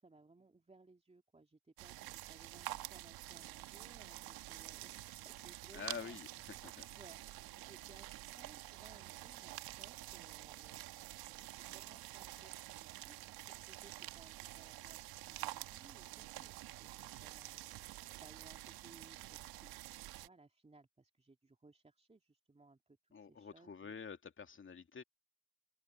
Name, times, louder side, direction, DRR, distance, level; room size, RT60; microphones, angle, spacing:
voice 1, 0.0-6.2 6.5-7.2 7.6-19.9 20.2-24.0, right 3 dB, 15° right, 3.2 m, -63 dB
sound 1, 1.8-20.3, right 16 dB, 65° right, 1.8 m, -49 dB
voice 2, 5.7-6.3 6.6-6.9 23.1-25.0, left 6 dB, 30° left, 2.6 m, -47 dB
open air
hypercardioid pair, 65°, 40 cm